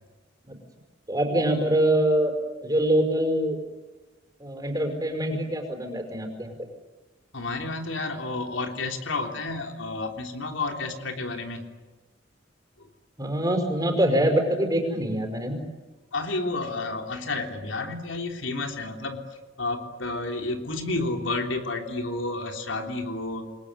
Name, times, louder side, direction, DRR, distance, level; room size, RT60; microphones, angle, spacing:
voice 1, 1.1-2.3 2.6-3.6 4.4-6.5 13.2-15.6, right 1 dB, 20° right, 4 dB, 5.3 m, -24 dB
voice 2, 7.3-11.6 12.8-12.9 16.1-23.5, left 2 dB, 85° left, 4 dB, 3.4 m, -31 dB
28.5 x 21.5 x 9.7 m, 1.2 s
head